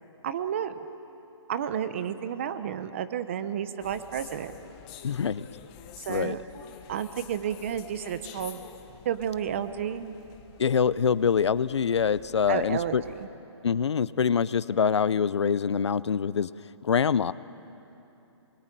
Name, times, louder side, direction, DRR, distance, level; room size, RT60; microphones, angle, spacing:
voice 1, 0.2-0.7 1.5-4.6 6.0-6.4 6.9-8.6 9.0-10.1 12.5-13.3, right 9 dB, 25° right, 11 dB, 0.9 m, -31 dB
sound 1, 3.8-13.3, left 9 dB, 15° left, 0.9 m, -49 dB
voice 2, 5.0-5.5 6.1-6.4 10.6-13.0 13.6-16.5 16.8-17.3, left 6 dB, 65° left, 18 dB, 0.7 m, -25 dB
27.5 x 22.5 x 9.1 m, 3.0 s
hypercardioid pair, 170°, 15 cm